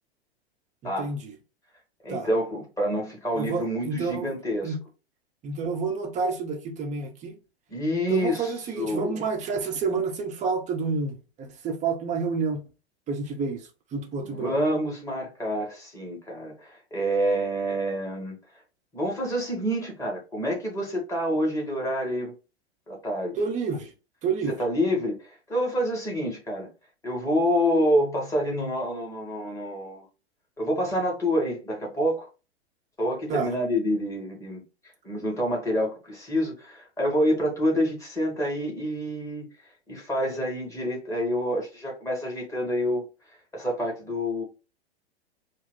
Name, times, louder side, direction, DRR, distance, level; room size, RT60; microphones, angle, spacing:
voice 1, 1.0-1.3 2.1-2.3 3.3-4.3 4.6-4.8 5.4-7.4 8.1-12.6 13.1-14.5 23.4-23.9 24.2-24.5 33.3-33.5, right 4 dB, 20° right, 1.1 m, -29 dB
voice 2, 2.0-4.8 7.7-9.2 14.2-18.3 18.9-22.3 22.9-23.4 24.5-26.7 27.0-30.0 30.6-32.3 33.0-34.6 35.0-39.5 39.9-43.0 43.5-44.4, equal, 10° left, 1.9 m, -27 dB
4.9 x 2.3 x 3.9 m
figure-of-eight pair, 105°, 33 cm